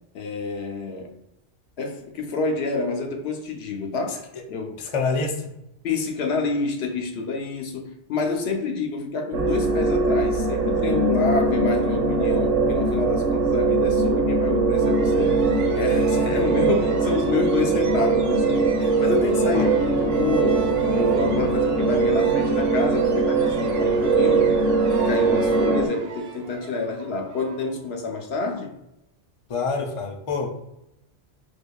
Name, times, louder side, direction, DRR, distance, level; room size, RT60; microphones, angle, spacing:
voice 1, 0.1-1.1 1.8-4.8 5.8-15.4 15.7-20.7 20.9-24.5 24.9-28.7, left 4 dB, 65° left, 0.8 m, -28 dB
voice 2, 4.1-4.4 4.8-5.5 19.5-19.6 29.5-30.5, left 4 dB, 50° left, 0.4 m, -27 dB
sound 1, 9.3-25.9, right 3 dB, 90° right, 1.1 m, -21 dB
sound 2, 14.7-28.2, right 4 dB, 60° right, 0.8 m, -38 dB
4.5 x 2.5 x 2.2 m
omnidirectional pair, 1.2 m